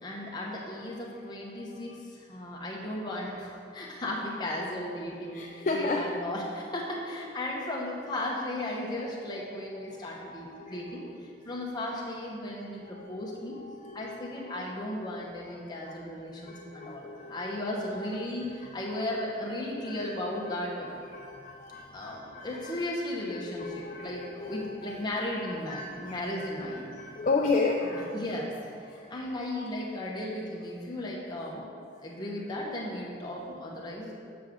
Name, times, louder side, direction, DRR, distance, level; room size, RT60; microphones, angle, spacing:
voice 1, 0.0-13.6 13.9-20.9 21.9-26.9 27.9-28.5 28.9-31.7 32.0-34.1, left 1 dB, 20° left, -3 dB, 1.0 m, -36 dB
voice 2, 1.6-2.0 5.3-6.0 9.8-11.0 12.8-14.5 15.6-15.9 16.4-18.2 18.6-18.7 19.8-20.2 20.6-22.7 23.3-28.3 28.9-29.1 31.9-32.1, left 3 dB, 40° left, 0 dB, 0.4 m, -35 dB
7.4 x 6.2 x 3.7 m, 2.4 s
head